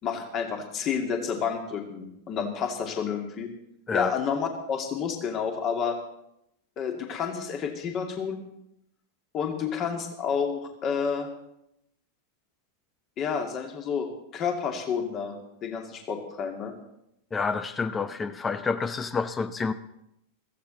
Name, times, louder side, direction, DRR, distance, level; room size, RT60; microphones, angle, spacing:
voice 1, 0.0-3.5 3.9-6.0 6.8-8.4 9.3-11.3 13.2-16.7, left 6 dB, 30° left, 4 dB, 2.4 m, -30 dB
voice 2, 17.3-19.7, left 4 dB, 15° left, 13 dB, 0.7 m, -28 dB
16.0 x 15.0 x 4.1 m, 0.81 s
figure-of-eight pair, 90°, 0 cm